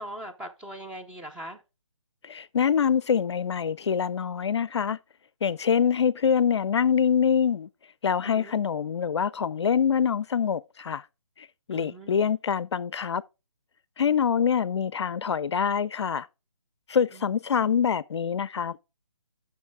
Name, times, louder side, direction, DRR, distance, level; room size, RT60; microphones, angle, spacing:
voice 1, 0.0-1.6 8.2-8.5 11.7-12.2 17.1-17.4, right 1 dB, 5° right, 0.6 m, -41 dB
voice 2, 2.2-5.0 5.4-7.7 8.0-11.0 11.4-13.2 14.0-16.3 16.9-18.8, left 7 dB, 60° left, 0.4 m, -25 dB
9.2 x 6.5 x 3.4 m
figure-of-eight pair, 150°, 16 cm